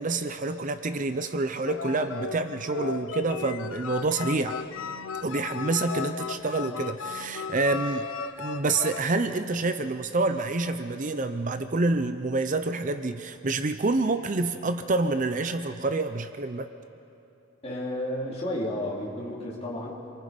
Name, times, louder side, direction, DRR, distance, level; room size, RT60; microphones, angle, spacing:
voice 1, 0.0-4.6 5.2-8.1 8.4-16.7, right 3 dB, 40° right, 9 dB, 0.6 m, -27 dB
sound 1, 1.7-9.0, left 5 dB, 75° left, 0.7 m, -36 dB
voice 2, 17.6-19.9, left 1 dB, 30° left, -5 dB, 3.7 m, -32 dB
26.5 x 23.5 x 5.2 m, 2.8 s
head